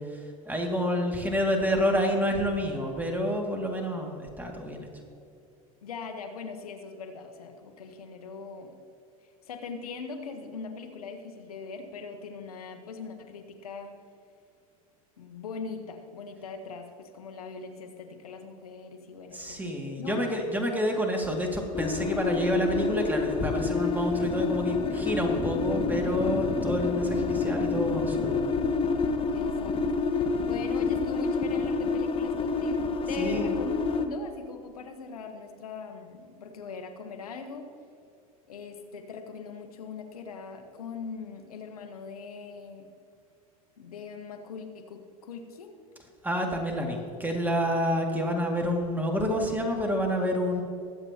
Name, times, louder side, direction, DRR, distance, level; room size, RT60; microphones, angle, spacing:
voice 1, 0.0-4.9 19.3-28.5 33.2-33.6 46.2-50.6, equal, 10° right, 1 dB, 2.3 m, -28 dB
voice 2, 5.8-8.7 9.5-13.9 15.2-20.1 29.3-29.8 30.4-37.7 38.5-42.9 43.8-45.8, left 5 dB, 85° left, 6 dB, 1.4 m, -41 dB
sound 1, 21.7-34.1, left 4 dB, 30° left, 1.1 m, -28 dB
21.5 x 8.1 x 2.9 m, 2.6 s
hypercardioid pair, 90°, 19 cm